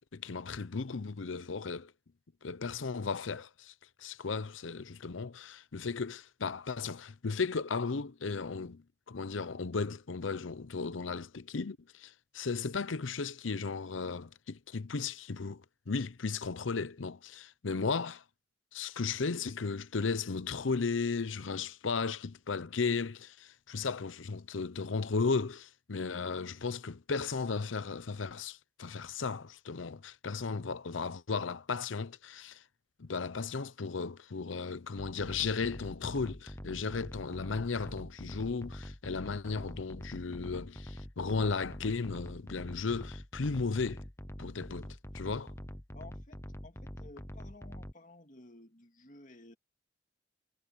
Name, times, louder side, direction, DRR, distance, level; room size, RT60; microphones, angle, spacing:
voice 1, 0.1-1.9 2.4-3.7 4.0-8.8 9.1-18.2 18.7-32.6 33.0-44.0 44.4-44.9 45.1-45.5, left 4 dB, 90° left, 0.7 m, -35 dB
sound 1, 35.0-47.9, left 1 dB, 15° left, 0.8 m, -45 dB
voice 2, 45.9-49.5, left 2 dB, 40° left, 2.3 m, -54 dB
head